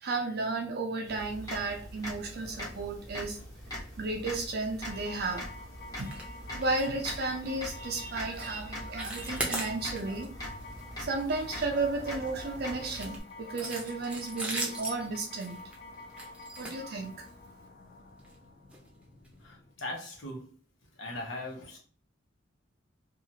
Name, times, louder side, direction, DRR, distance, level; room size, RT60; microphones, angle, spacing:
voice 1, 0.0-3.4 4.0-5.5 6.0-6.2 6.5-10.3 11.0-15.6 16.6-17.3, right 3 dB, 55° right, 0.5 m, -33 dB
sound 1, 1.1-13.2, left 1 dB, 20° left, 1.1 m, -43 dB
sound 2, 4.8-19.7, left 2 dB, 45° left, 0.6 m, -48 dB
sound 3, 6.0-6.3 6.5-6.9 7.1-7.3 7.8-8.0 8.3-8.5 8.8-10.2 10.6-10.8 11.2-12.3 12.8-17.4 18.2-18.3 18.7-18.8 19.2-19.3, right 2 dB, 5° right, 0.7 m, -38 dB
voice 2, 19.4-20.5 21.0-21.8, left 1 dB, 85° left, 1.0 m, -39 dB
2.8 x 2.4 x 2.7 m
head